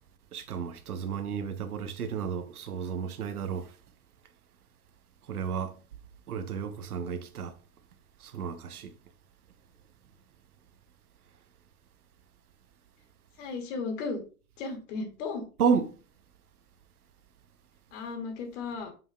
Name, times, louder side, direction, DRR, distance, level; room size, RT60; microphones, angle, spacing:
voice 1, 0.3-3.7 5.3-5.7 6.3-7.6 8.2-8.9 15.6-16.0, right 6 dB, 85° right, 0.9 m, -32 dB
voice 2, 13.4-14.2 14.6-15.5 17.9-18.9, left 4 dB, 55° left, 2.4 m, -35 dB
7.2 x 5.5 x 2.4 m
hypercardioid pair, 110°, 44 cm